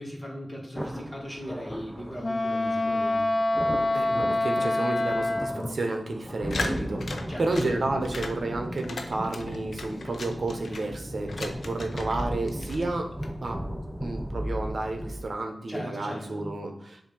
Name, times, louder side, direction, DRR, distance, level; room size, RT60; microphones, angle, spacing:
voice 1, 0.0-3.2 7.3-7.8 15.7-16.5, equal, 15° left, 0 dB, 1.8 m, -38 dB
sound 1, 0.7-15.2, equal, ahead, 0.7 m, -36 dB
Wind instrument woodwind instrument, 2.2-5.7, left 2 dB, 30° left, 0.7 m, -26 dB
voice 2, 3.9-13.1 13.4-13.6 14.0-17.0, right 2 dB, 65° right, 4 dB, 0.9 m, -31 dB
sound 2, 6.5-7.7 8.0-8.4 8.7-10.9 11.3-12.2 12.5-13.3, left 3 dB, 75° left, 0.7 m, -37 dB
7.1 x 2.7 x 5.4 m, 0.68 s
cardioid pair, 55°, 0 cm